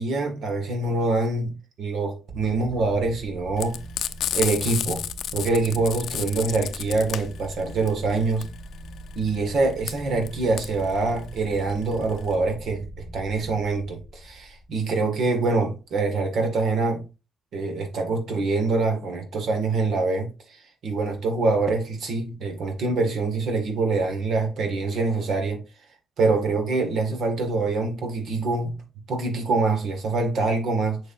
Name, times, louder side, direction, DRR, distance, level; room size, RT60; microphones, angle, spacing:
voice 1, 0.0-3.8 4.3-5.0 5.3-8.5 9.2-12.9 13.1-17.1 17.5-25.6 26.2-28.8 29.1-31.0, right 3 dB, 65° right, 1.8 m, -25 dB
sound 1, 2.3-15.6, right 1 dB, 45° right, 1.8 m, -41 dB
Frying (food), 3.6-12.3, left 10 dB, 70° left, 0.6 m, -31 dB
6.6 x 6.5 x 2.6 m
cardioid pair, 90°, 0 cm